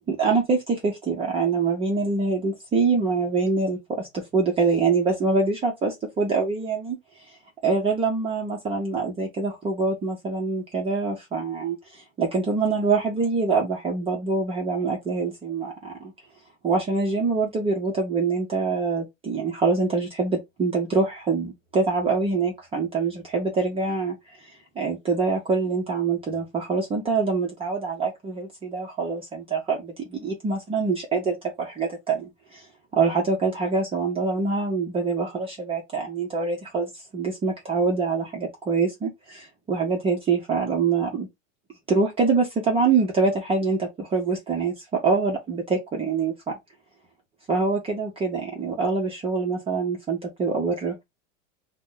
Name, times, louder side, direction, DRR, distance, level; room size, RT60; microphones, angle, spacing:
voice 1, 0.1-7.0 7.3-7.4 7.6-16.1 16.6-32.7 32.9-41.3 41.9-46.6 47.5-51.0, right 4 dB, 15° right, 0.5 m, -25 dB
2.5 x 2.1 x 3.7 m
supercardioid pair, 140°, 40 cm